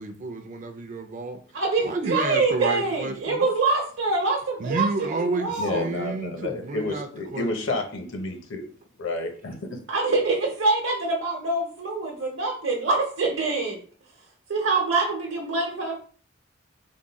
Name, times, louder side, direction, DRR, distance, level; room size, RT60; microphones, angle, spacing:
voice 1, 0.0-1.4 1.8-3.5 4.6-7.8, right 3 dB, 40° right, 0.4 m, -30 dB
voice 2, 1.5-5.9 9.9-13.8 14.5-16.0, right 3 dB, 65° right, 0.8 m, -25 dB
voice 3, 5.5-8.7 9.0-9.8, left 2 dB, 65° left, 0.8 m, -30 dB
3.6 x 2.2 x 4.0 m
head